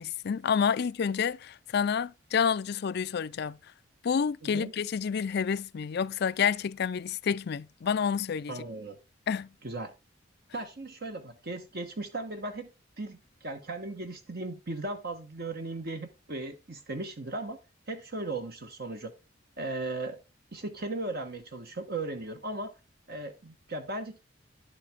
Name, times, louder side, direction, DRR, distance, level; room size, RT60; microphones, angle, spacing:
voice 1, 0.0-3.7 4.0-8.6 9.3-9.5, left 6 dB, 60° left, 0.4 m, -29 dB
voice 2, 8.5-9.0 9.6-9.9 10.5-12.7 13.0-17.6 17.9-19.1 19.6-20.2 20.5-22.7 23.1-24.2, right 2 dB, 55° right, 1.2 m, -37 dB
10.5 x 7.6 x 3.6 m
head